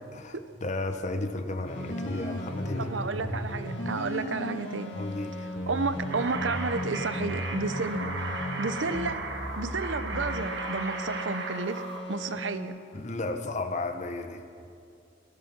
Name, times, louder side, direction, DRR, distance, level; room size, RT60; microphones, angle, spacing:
voice 1, 0.1-2.9 4.9-5.4 12.9-14.4, left 2 dB, 40° left, 7 dB, 1.0 m, -33 dB
sound 1, 1.6-12.6, equal, 80° left, 3.0 m, -36 dB
voice 2, 2.8-5.0 5.7-8.1 8.6-9.2 9.6-11.8 12.1-12.7, right 3 dB, 90° right, 11 dB, 0.8 m, -31 dB
sound 2, 6.1-12.0, right 3 dB, 65° right, 1.6 m, -36 dB
17.5 x 13.5 x 6.0 m, 2.5 s
head